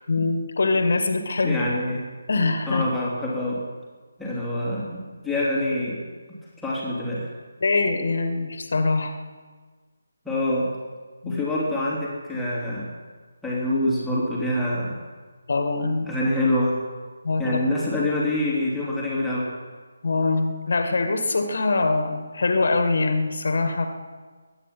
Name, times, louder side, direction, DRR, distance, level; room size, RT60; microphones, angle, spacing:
voice 1, 0.1-1.7 2.3-2.8 7.6-9.1 11.2-11.4 15.5-16.1 17.2-17.4 20.0-23.9, left 3 dB, 50° left, 6 dB, 2.0 m, -23 dB
voice 2, 1.4-2.0 2.6-3.6 4.2-6.4 6.6-7.3 10.2-10.7 11.2-12.9 13.4-15.0 16.1-16.8 17.4-19.5, left 1 dB, ahead, -8 dB, 3.3 m, -26 dB
22.5 x 9.9 x 5.7 m, 1.4 s
figure-of-eight pair, 150°, 0 cm